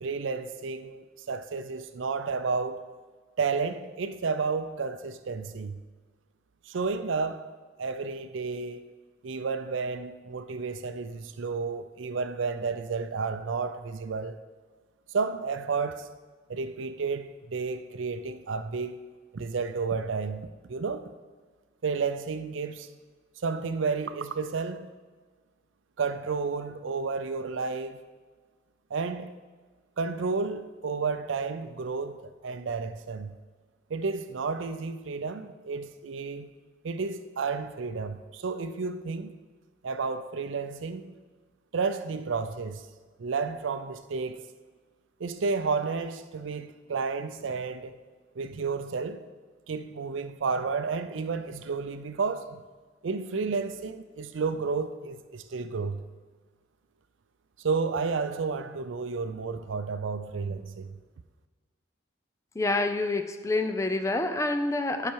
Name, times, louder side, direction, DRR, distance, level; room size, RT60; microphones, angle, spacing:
voice 1, 0.0-2.8 3.4-5.8 6.7-7.5 7.8-8.8 9.2-14.4 15.1-16.1 16.5-19.0 19.3-21.0 21.8-22.9 23.4-24.9 26.0-28.0 28.9-29.3 30.0-33.4 33.9-36.5 36.8-39.4 39.8-41.1 41.7-42.9 43.2-44.4 45.2-48.0 48.4-49.2 49.7-52.6 53.0-56.0 57.6-61.0, right 4 dB, 75° right, 0.5 m, -31 dB
voice 2, 62.6-65.1, left 2 dB, 15° left, 0.4 m, -27 dB
10.5 x 5.8 x 4.6 m
head